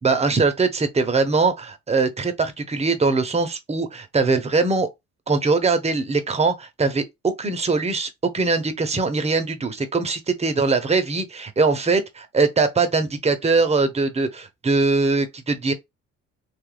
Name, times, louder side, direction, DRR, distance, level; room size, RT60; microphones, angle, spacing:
voice 1, 0.0-4.9 5.3-15.7, right 3 dB, 20° right, 0.7 m, -21 dB
3.1 x 2.4 x 3.2 m
cardioid pair, 90°, 30 cm